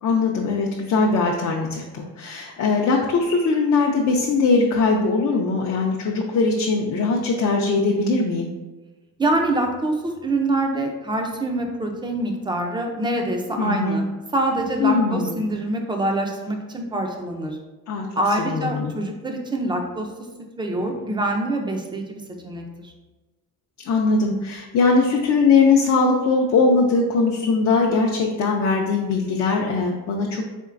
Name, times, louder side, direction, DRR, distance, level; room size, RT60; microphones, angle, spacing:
voice 1, 0.0-8.5 13.6-14.0 14.8-15.4 17.9-18.1 18.4-18.9 23.8-30.5, left 4 dB, 50° left, 0 dB, 0.4 m, -20 dB
voice 2, 9.2-14.0 14.3-17.6 18.2-20.1 20.6-22.9, right 1 dB, 15° right, 3 dB, 0.4 m, -25 dB
4.3 x 3.8 x 2.4 m, 1.1 s
cardioid pair, 175°, 34 cm